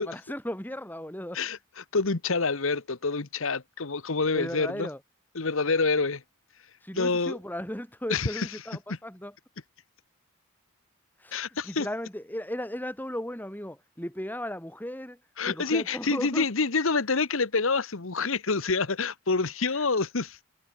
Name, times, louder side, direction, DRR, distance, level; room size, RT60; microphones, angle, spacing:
voice 1, 0.0-1.4 4.3-5.0 6.8-9.3 11.2-15.2 15.4-16.5, equal, 10° left, 5.4 m, -36 dB
voice 2, 1.3-4.9 5.3-6.2 6.9-7.4 8.1-8.5 11.3-11.9 15.4-20.4, left 4 dB, 65° left, 1.2 m, -27 dB
head